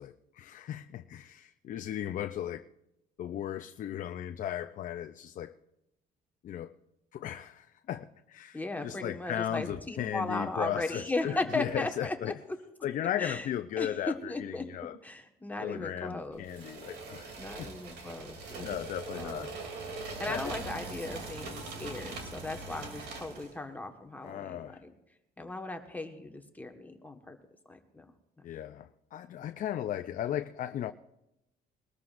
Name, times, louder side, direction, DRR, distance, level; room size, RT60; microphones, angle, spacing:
voice 1, 0.0-2.7 3.2-5.5 6.4-6.7 7.1-12.3 12.8-15.0 15.6-17.7 18.6-19.6 20.3-20.4 24.2-24.8 28.4-30.9, left 11 dB, 50° left, 0.5 m, -36 dB
voice 2, 8.5-12.1 13.2-13.5 13.8-13.9 14.3-14.6 15.0-16.4 17.4-18.7 19.1-19.5 20.2-24.9 25.4-27.4 27.7-28.0, left 2 dB, 10° left, 1.4 m, -37 dB
sound 1, 16.4-23.6, right 3 dB, 80° right, 2.9 m, -41 dB
21.5 x 13.5 x 2.5 m
cardioid pair, 110°, 17 cm